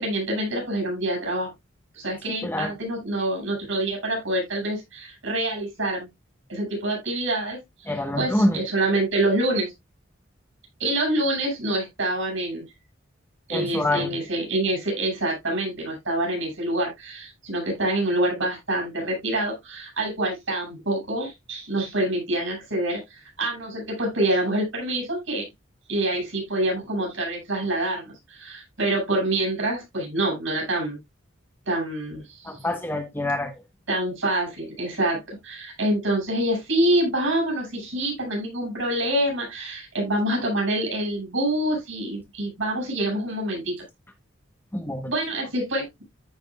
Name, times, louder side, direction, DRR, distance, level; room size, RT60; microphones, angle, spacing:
voice 1, 0.0-1.5 1.9-6.1 6.5-7.6 8.1-9.7 10.8-12.6 13.5-25.5 25.9-31.0 31.6-32.6 33.9-43.7 45.1-46.0, right 1 dB, 75° right, 6.4 m, -26 dB
voice 2, 2.3-2.7 7.9-8.6 13.5-14.1 32.4-33.5 44.7-45.1, left 1 dB, 10° left, 1.0 m, -26 dB
14.0 x 5.1 x 2.3 m
head